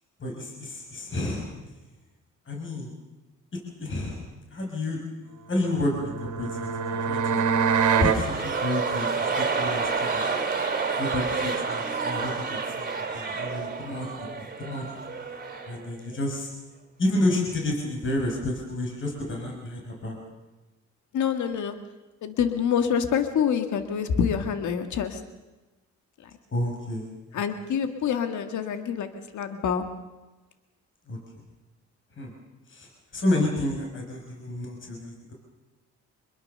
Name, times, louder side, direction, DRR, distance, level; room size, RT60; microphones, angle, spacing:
voice 1, 0.2-1.5 2.5-2.9 3.8-5.0 5.5-7.5 8.0-10.3 11.0-15.0 15.7-16.5 17.0-20.2 26.5-27.1 31.1-31.2 32.2-32.3 32.7-35.3, left 1 dB, 40° left, 0 dB, 5.7 m, -30 dB
sound 1, 5.6-8.2, right 6 dB, 80° right, 2.6 m, -25 dB
sound 2, 7.8-15.9 16.1-16.2, right 4 dB, 30° right, 3.2 m, -29 dB
voice 2, 21.1-21.7 22.2-25.2 27.3-29.1 29.3-29.8, left 7 dB, 75° left, 8 dB, 2.0 m, -26 dB
25.5 x 22.0 x 6.8 m, 1.1 s
cardioid pair, 90°, 30 cm